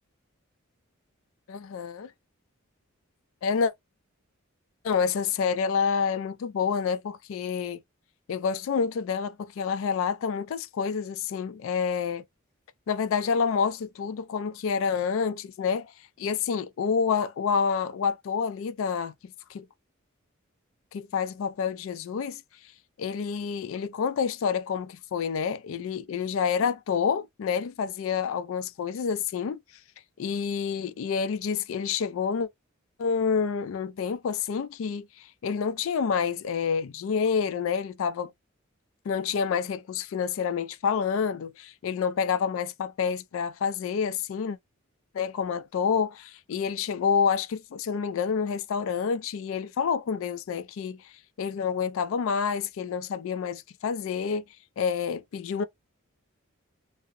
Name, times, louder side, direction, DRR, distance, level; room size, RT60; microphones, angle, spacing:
voice 1, 1.5-2.1 3.4-3.7 4.8-7.8 8.3-12.2 12.9-15.9 16.2-19.1 19.5-19.7 20.9-22.4 23.0-29.6 30.2-32.5 33.0-38.3 39.1-44.6 45.1-51.0 51.4-54.4 54.8-55.6, left 6 dB, 70° left, 0.3 m, -28 dB
2.6 x 2.0 x 2.4 m
head